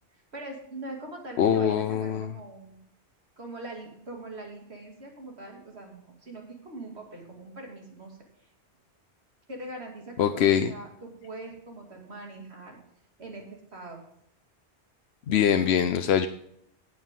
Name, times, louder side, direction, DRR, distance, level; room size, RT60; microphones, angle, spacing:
voice 1, 0.3-2.8 3.4-8.2 9.5-10.4 10.7-12.8 13.2-14.0, right 2 dB, 70° right, 0 dB, 2.9 m, -42 dB
voice 2, 1.4-2.3 10.2-10.7 15.3-16.3, left 9 dB, 70° left, 8 dB, 0.9 m, -23 dB
18.0 x 6.5 x 3.7 m, 0.70 s
omnidirectional pair, 1.1 m